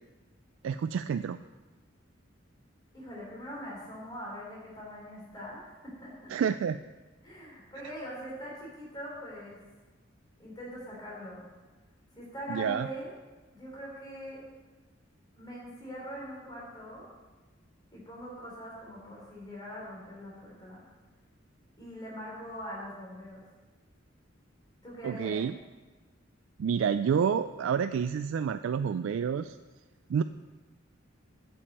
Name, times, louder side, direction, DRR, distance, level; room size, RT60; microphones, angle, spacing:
voice 1, 0.6-1.4 6.3-6.8 12.5-12.9 25.0-25.5 26.6-29.6 30.1-30.2, right 7 dB, 85° right, 11 dB, 0.3 m, -29 dB
voice 2, 2.9-6.3 7.2-9.6 10.4-11.5 12.1-13.1 13.5-14.4 15.4-17.0 17.9-20.8 21.8-23.4 24.8-25.4, equal, 20° left, -5 dB, 3.8 m, -42 dB
8.5 x 7.1 x 7.5 m, 1.3 s
head